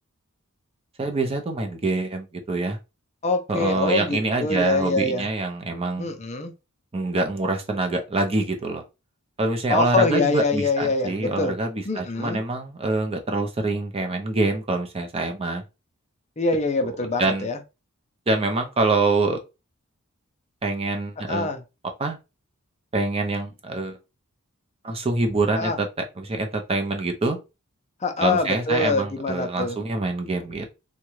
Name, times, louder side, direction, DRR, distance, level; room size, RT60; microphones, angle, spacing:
voice 1, 1.0-2.8 3.5-6.1 6.9-8.8 9.4-15.6 17.2-17.5 18.3-19.4 20.6-21.5 22.0-22.2 22.9-24.0 24.8-25.9 26.2-27.4 28.2-30.7, right 2 dB, 25° right, 0.6 m, -25 dB
voice 2, 3.2-5.3 6.0-6.5 9.7-11.6 11.9-12.4 16.4-17.6 21.3-21.6 25.6-25.8 28.0-29.8, left 3 dB, 30° left, 0.5 m, -24 dB
3.5 x 2.2 x 3.0 m
head